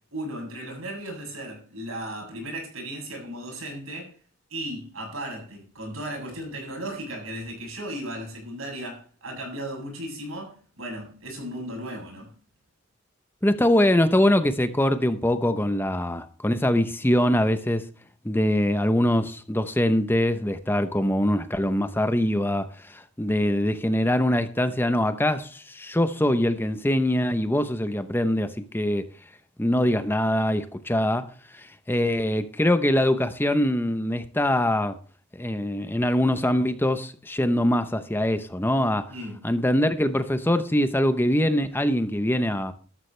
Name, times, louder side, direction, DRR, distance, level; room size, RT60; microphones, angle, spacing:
voice 1, 0.1-4.1 4.5-12.3 39.1-39.4, right 1 dB, 75° right, 7.7 m, -36 dB
voice 2, 13.4-17.8 18.2-29.1 29.6-35.0 35.3-39.1 39.4-42.7, left 1 dB, 10° left, 0.7 m, -23 dB
14.0 x 13.5 x 3.3 m
head